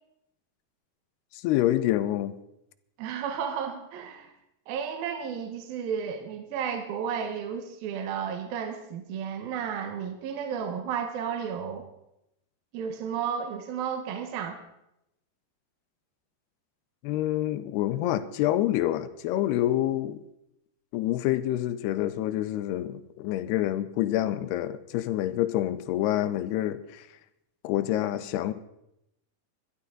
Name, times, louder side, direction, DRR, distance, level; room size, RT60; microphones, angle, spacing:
voice 1, 1.3-2.3 17.0-20.2 20.9-27.1 27.6-28.5, left 13 dB, 80° left, 2.6 m, -27 dB
voice 2, 3.0-4.3 4.7-11.9 12.7-14.6, right 7 dB, 70° right, 2.7 m, -33 dB
21.5 x 12.5 x 3.8 m
omnidirectional pair, 4.9 m